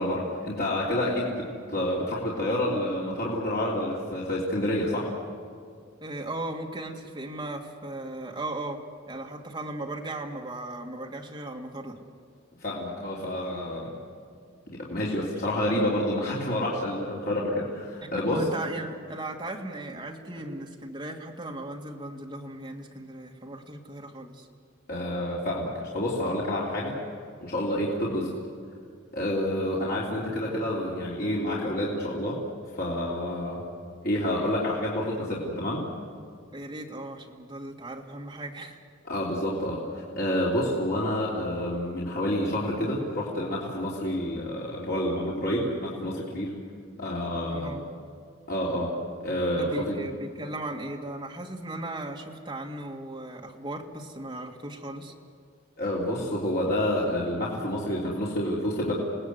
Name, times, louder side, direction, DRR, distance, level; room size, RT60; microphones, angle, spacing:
voice 1, 0.0-5.1 12.6-13.9 14.7-18.4 24.9-27.0 27.4-28.3 29.1-32.4 32.7-33.6 34.0-35.8 39.1-46.5 47.0-47.7 48.5-48.9 49.2-50.0 55.8-58.9, left 1 dB, 50° left, -5 dB, 3.3 m, -28 dB
voice 2, 6.0-12.0 18.0-24.5 30.4-30.7 36.5-38.8 47.5-47.8 49.5-55.1, right 1 dB, 20° right, 1 dB, 2.2 m, -37 dB
28.0 x 19.0 x 8.1 m, 2.2 s
head